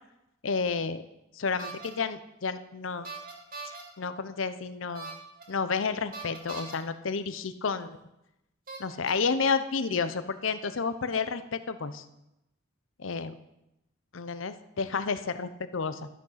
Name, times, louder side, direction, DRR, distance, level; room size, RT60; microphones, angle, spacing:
voice 1, 0.4-1.0 1.3-3.1 3.6-5.1 5.5-8.0 8.8-12.0 13.0-13.3 14.1-16.1, left 5 dB, 85° left, 12 dB, 0.7 m, -31 dB
sound 1, 1.6-1.9 3.0-3.8 4.9-5.4 6.1-6.8 7.8-7.9 8.7-9.1, right 3 dB, 45° right, 2.2 m, -40 dB
12.5 x 6.3 x 5.7 m, 0.88 s
head